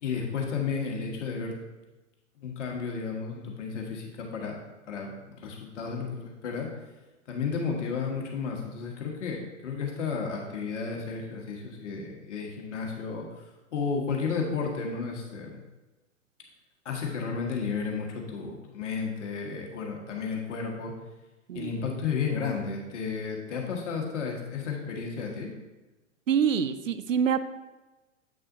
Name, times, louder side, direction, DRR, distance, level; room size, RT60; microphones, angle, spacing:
voice 1, 0.0-1.6 2.4-4.6 4.9-6.7 7.3-13.2 13.7-15.6 16.8-20.9 21.5-25.5, left 5 dB, 65° left, 0 dB, 1.6 m, -32 dB
voice 2, 26.3-27.4, right 7 dB, 85° right, 12 dB, 0.5 m, -25 dB
7.9 x 6.2 x 2.7 m, 1.1 s
figure-of-eight pair, 100°, 38 cm